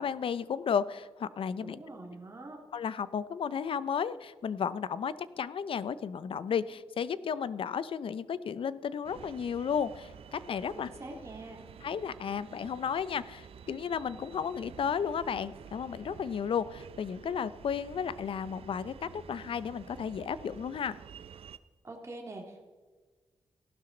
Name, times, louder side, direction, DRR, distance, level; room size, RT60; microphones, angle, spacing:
voice 1, 0.0-1.8 2.7-10.9 11.8-21.0, left 7 dB, 65° left, 16 dB, 0.5 m, -33 dB
voice 2, 1.6-2.6 10.7-11.6 21.8-22.6, right 2 dB, 30° right, 0 dB, 2.1 m, -44 dB
sound 1, 9.0-21.6, right 7 dB, 75° right, 0.5 m, -50 dB
15.0 x 12.0 x 3.9 m, 1.4 s
cardioid pair, 100°, 10 cm